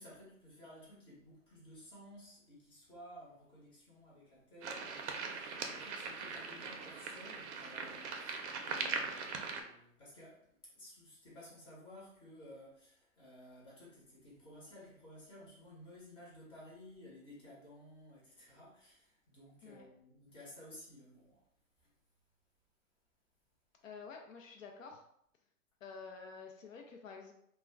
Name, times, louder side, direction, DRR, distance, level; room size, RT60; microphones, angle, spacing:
voice 1, 0.0-21.4 21.8-21.9, left 1 dB, 10° left, -6 dB, 0.8 m, -55 dB
sound 1, 4.6-9.6, right 5 dB, 50° right, 0.5 m, -41 dB
voice 2, 23.8-25.0 25.8-27.3, left 5 dB, 65° left, 2 dB, 0.6 m, -49 dB
2.3 x 2.1 x 3.3 m, 0.72 s
hypercardioid pair, 135°, 43 cm